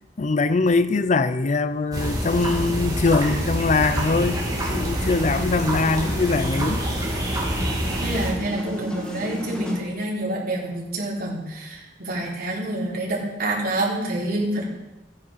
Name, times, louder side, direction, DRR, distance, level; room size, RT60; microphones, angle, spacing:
voice 1, 0.2-4.4 4.7-6.8, left 3 dB, 40° left, 12 dB, 0.6 m, -22 dB
sound 1, 1.9-8.3, equal, 20° right, 2.9 m, -26 dB
sound 2, 4.1-9.8, equal, 5° left, 2.0 m, -33 dB
voice 2, 8.0-14.6, right 1 dB, 55° right, -5 dB, 3.9 m, -27 dB
14.5 x 9.6 x 5.8 m, 1.0 s
head